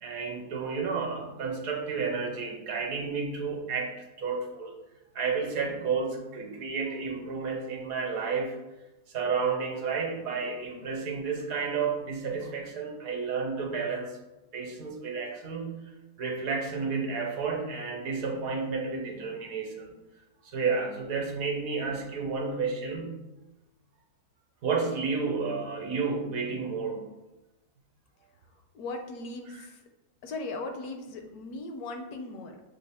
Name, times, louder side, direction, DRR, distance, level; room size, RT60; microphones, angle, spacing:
voice 1, 0.0-4.8 5.1-8.6 9.1-14.2 14.5-15.8 16.2-19.9 20.4-23.1 24.6-27.1, right 5 dB, 65° right, 1 dB, 1.1 m, -31 dB
voice 2, 28.7-29.8 30.2-32.6, left 2 dB, 75° left, 5 dB, 1.1 m, -38 dB
6.5 x 2.4 x 3.4 m, 1.0 s
omnidirectional pair, 1.7 m